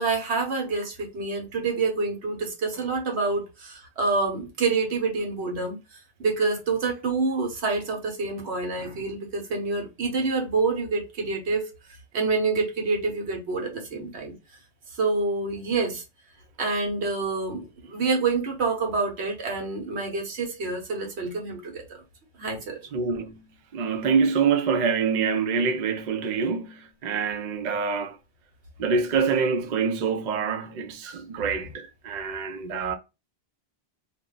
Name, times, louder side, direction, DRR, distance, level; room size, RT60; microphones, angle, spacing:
voice 1, 0.0-5.8 6.2-11.6 12.1-14.3 15.0-16.0 16.6-21.8 22.4-22.8, right 4 dB, 90° right, 1.2 m, -27 dB
voice 2, 22.9-23.4 23.7-28.2 28.8-32.9, right 5 dB, 55° right, 0.6 m, -26 dB
2.5 x 2.2 x 3.7 m
omnidirectional pair, 1.1 m